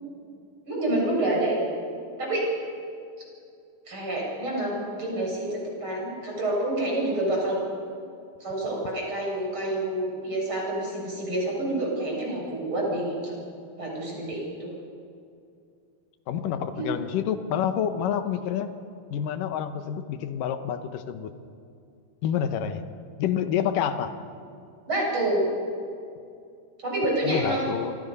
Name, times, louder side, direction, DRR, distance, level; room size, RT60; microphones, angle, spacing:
voice 1, 0.7-1.6 2.2-2.5 3.9-7.6 8.4-13.3 13.8-14.7 16.8-16.9 24.9-25.5 26.8-27.7, right 1 dB, 30° right, -2 dB, 7.8 m, -28 dB
voice 2, 16.3-18.7 19.1-21.3 22.2-22.8 23.2-24.1 27.2-28.0, left 9 dB, 65° left, 8 dB, 2.5 m, -28 dB
27.5 x 25.0 x 5.5 m, 2.5 s
omnidirectional pair, 4.6 m